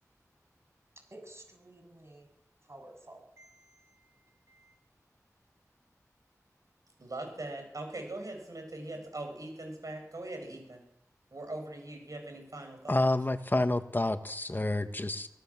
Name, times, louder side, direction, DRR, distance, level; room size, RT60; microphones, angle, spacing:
voice 1, 1.1-2.3 2.7-4.1 4.5-4.8, right 1 dB, 50° right, 4 dB, 7.9 m, -53 dB
voice 2, 7.0-10.8 11.3-13.1, right 2 dB, 70° right, 4 dB, 7.9 m, -41 dB
voice 3, 12.9-15.3, left 2 dB, 35° left, 8 dB, 1.8 m, -29 dB
25.0 x 17.0 x 7.6 m, 0.77 s
wide cardioid pair, 50°, 6 cm